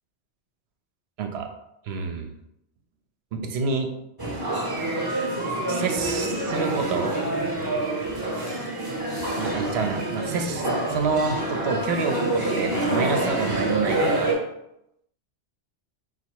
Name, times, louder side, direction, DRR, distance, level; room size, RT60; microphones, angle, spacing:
voice 1, 1.2-1.5 1.9-2.3 3.3-3.9 5.7-7.1 9.4-14.3, right 5 dB, 70° right, 6 dB, 0.8 m, -28 dB
sound 1, 4.2-14.3, right 1 dB, 25° right, 0.7 m, -27 dB
4.0 x 2.3 x 4.5 m, 0.82 s
omnidirectional pair, 1.2 m